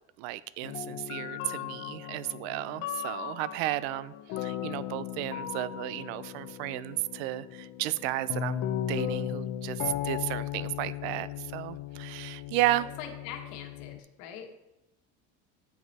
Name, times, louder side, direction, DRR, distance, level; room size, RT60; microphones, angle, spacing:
voice 1, 0.2-12.9, right 16 dB, 80° right, 17 dB, 0.5 m, -33 dB
sound 1, 0.6-14.0, left 11 dB, 50° left, 0.6 m, -37 dB
voice 2, 13.0-14.5, left 8 dB, 70° left, 4 dB, 1.4 m, -43 dB
8.2 x 5.3 x 4.1 m, 0.92 s
cardioid pair, 150°, 31 cm